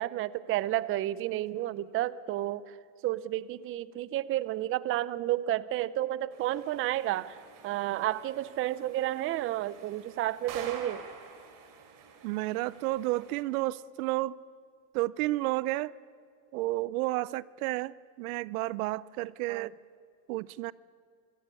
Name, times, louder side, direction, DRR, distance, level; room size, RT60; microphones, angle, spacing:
voice 1, 0.0-2.8 3.0-11.1 19.5-19.7, right 14 dB, 30° right, 18 dB, 0.6 m, -31 dB
sound 1, 6.3-13.4, right 6 dB, 45° right, 3.4 m, -49 dB
voice 2, 12.2-14.4 14.9-15.9 16.5-19.7 20.3-20.7, right 18 dB, 70° right, 22 dB, 0.6 m, -31 dB
24.5 x 15.0 x 9.6 m, 2.3 s
supercardioid pair, 135°, 45 cm